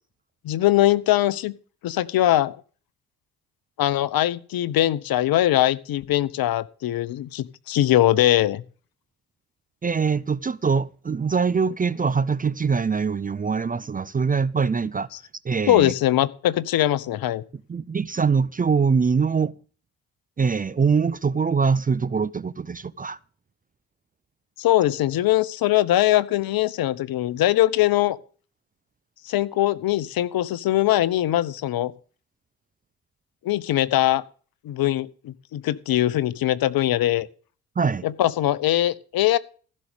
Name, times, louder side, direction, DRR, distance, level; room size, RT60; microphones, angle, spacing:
voice 1, 0.4-1.5 1.8-2.6 3.8-8.6 15.7-17.4 24.6-28.2 29.2-31.9 33.4-34.2 34.6-37.3 38.0-39.4, left 14 dB, 55° left, 1.0 m, -21 dB
voice 2, 9.8-15.1 15.4-15.9 17.7-19.5 20.4-23.2 37.8-38.0, right 5 dB, 20° right, 0.6 m, -23 dB
15.5 x 6.5 x 6.9 m
figure-of-eight pair, 40°, 44 cm